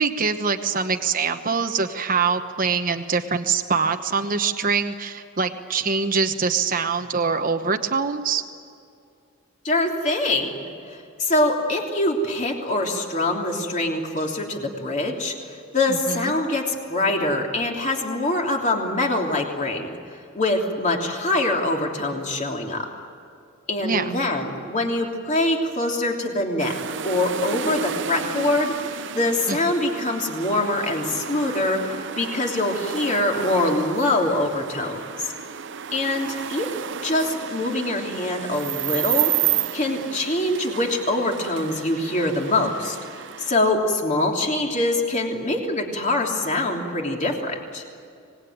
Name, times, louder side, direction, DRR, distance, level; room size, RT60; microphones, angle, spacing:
voice 1, 0.0-8.4 15.9-16.3 23.8-24.1 29.5-29.6, right 5 dB, 40° right, 6 dB, 1.1 m, -24 dB
voice 2, 9.6-19.9 20.3-22.9 23.7-26.8 27.0-35.3 35.9-36.7 37.0-43.0 43.4-47.8, left 2 dB, 35° left, 1 dB, 3.3 m, -24 dB
sound 1, 26.6-43.5, right 9 dB, 60° right, 0.7 m, -31 dB
25.5 x 19.5 x 9.4 m, 2.5 s
head